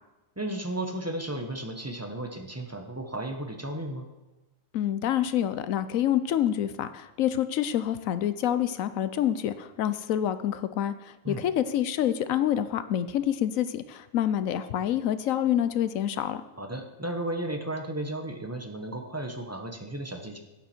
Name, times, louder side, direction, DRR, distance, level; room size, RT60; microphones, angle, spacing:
voice 1, 0.4-4.1 11.2-11.4 16.6-20.4, right 1 dB, 15° right, 4 dB, 1.0 m, -34 dB
voice 2, 4.7-16.4, left 10 dB, 80° left, 12 dB, 1.1 m, -27 dB
12.0 x 9.4 x 4.4 m, 1.1 s
omnidirectional pair, 1.4 m